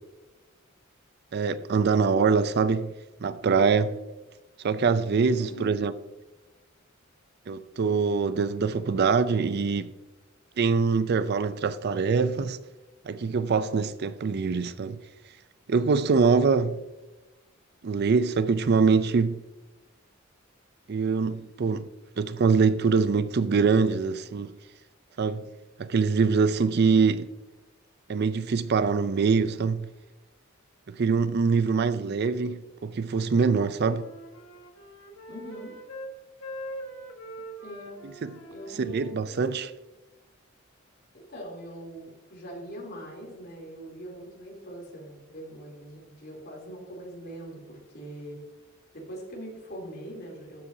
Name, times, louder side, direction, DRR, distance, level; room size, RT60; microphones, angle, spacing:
voice 1, 1.3-2.9 3.2-4.0 4.6-5.9 7.5-9.9 10.6-12.6 13.1-15.0 15.7-16.8 17.8-19.4 20.9-21.9 22.2-24.5 25.2-25.4 25.8-27.3 28.1-29.9 30.9-34.1 38.2-38.3 38.8-39.7, right 5 dB, 55° right, 0.4 m, -24 dB
voice 2, 5.4-5.8 31.9-32.4 35.3-35.8 37.6-38.0 38.5-39.1 41.1-48.4 48.9-50.6, equal, 50° left, 3.2 m, -42 dB
Wind instrument woodwind instrument, 33.3-36.1 36.4-39.7, right 1 dB, 75° left, 1.4 m, -43 dB
13.0 x 7.7 x 2.7 m
head